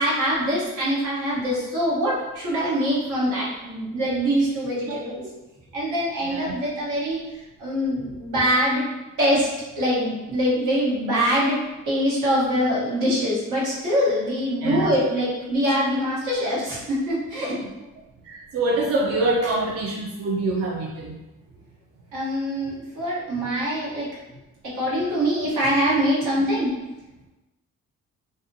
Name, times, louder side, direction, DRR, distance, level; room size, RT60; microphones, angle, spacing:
voice 1, 0.0-5.2 5.7-7.2 7.6-8.8 9.2-9.5 9.8-11.6 11.8-17.5 22.1-24.1 24.7-26.7, equal, 85° right, -7 dB, 1.2 m, -23 dB
voice 2, 6.2-6.5 14.6-14.9 18.2-21.2, right 2 dB, 50° right, -2 dB, 0.5 m, -25 dB
2.7 x 2.4 x 2.6 m, 1.1 s
cardioid pair, 90°, 30 cm